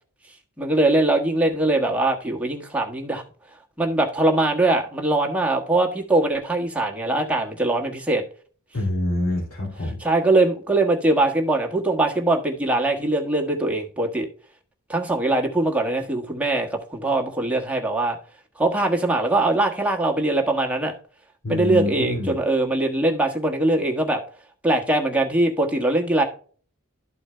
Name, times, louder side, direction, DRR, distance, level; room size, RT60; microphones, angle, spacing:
voice 1, 0.6-3.2 3.8-8.2 10.0-14.3 14.9-18.2 18.6-20.9 21.5-24.2 24.6-26.2, right 2 dB, 5° right, 1.3 m, -22 dB
voice 2, 8.7-10.0 21.4-22.3, left 2 dB, 80° left, 2.9 m, -26 dB
12.5 x 4.4 x 3.2 m
head